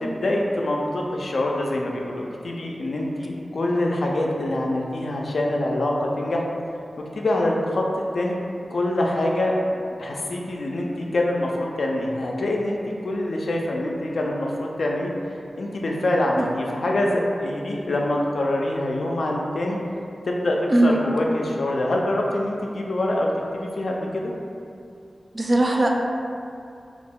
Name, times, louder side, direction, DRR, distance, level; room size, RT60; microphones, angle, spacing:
voice 1, 0.0-6.4 7.1-7.8 8.1-8.4 8.7-9.5 10.0-12.8 13.0-15.1 15.6-19.8 20.3-24.3, left 1 dB, 75° left, -1 dB, 0.3 m, -25 dB
voice 2, 25.3-25.9, right 1 dB, 45° right, 0 dB, 0.3 m, -19 dB
2.4 x 2.1 x 3.5 m, 2.4 s
cardioid pair, 45°, 0 cm